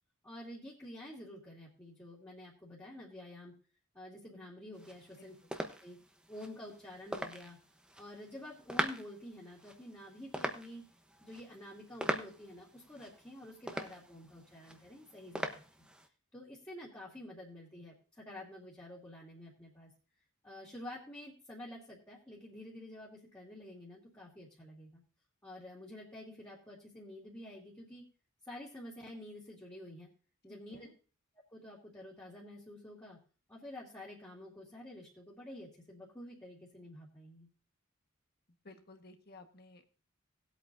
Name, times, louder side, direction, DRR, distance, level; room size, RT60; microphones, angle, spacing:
voice 1, 0.2-3.5 3.9-5.3 5.8-6.0 6.3-7.6 8.0-10.8 11.2-15.6 16.3-19.9 20.4-25.0 25.4-28.0 28.4-30.1 30.4-30.9 31.5-33.2 33.5-37.5, left 1 dB, 15° left, -6 dB, 2.4 m, -49 dB
sound 1, 4.7-16.1, right 1 dB, 5° right, 0.9 m, -42 dB
voice 2, 5.2-5.6 30.5-30.9 38.6-40.0, left 2 dB, 50° left, 6 dB, 1.4 m, -56 dB
19.0 x 8.3 x 2.6 m, 0.36 s
head